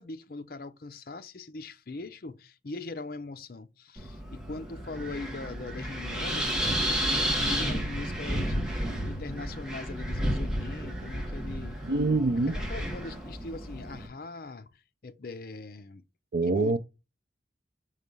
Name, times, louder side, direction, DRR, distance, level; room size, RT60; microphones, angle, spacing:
voice 1, 0.0-11.8 12.5-16.0 16.4-16.8, left 3 dB, 55° left, 0.6 m, -41 dB
Wind, 4.0-14.1, equal, 5° right, 1.5 m, -32 dB
voice 2, 11.8-12.6 16.3-16.8, right 2 dB, 70° right, 0.5 m, -25 dB
5.6 x 3.3 x 5.3 m
head